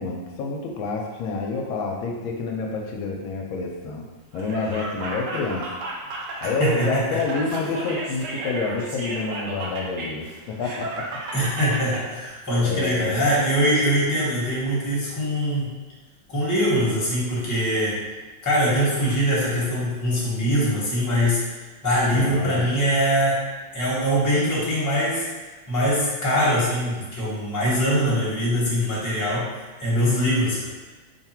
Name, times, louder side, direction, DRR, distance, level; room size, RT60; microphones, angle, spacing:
voice 1, 0.0-4.0 4.3-5.7 6.4-11.0 12.6-13.2 22.1-22.7, left 3 dB, 80° left, 1 dB, 1.4 m, -28 dB
Laughter, 4.3-12.0, right 2 dB, 85° right, 0.7 m, -33 dB
voice 2, 6.6-7.2 11.3-15.7 16.3-18.0 18.4-21.5 21.8-23.5 23.7-25.3 25.7-29.5 29.8-30.7, equal, 10° left, -8 dB, 0.9 m, -22 dB
3.5 x 2.4 x 4.3 m, 1.2 s
omnidirectional pair, 2.2 m